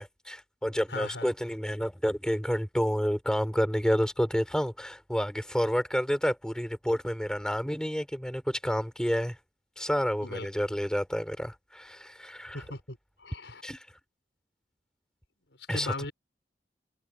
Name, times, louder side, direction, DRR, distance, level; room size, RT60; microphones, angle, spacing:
voice 1, 0.0-9.4 9.8-12.6 13.6-13.9 15.7-15.9, equal, 5° left, 5.5 m, -29 dB
voice 2, 0.9-1.3 10.2-10.7 12.5-13.6 15.7-16.1, left 2 dB, 85° left, 6.4 m, -38 dB
head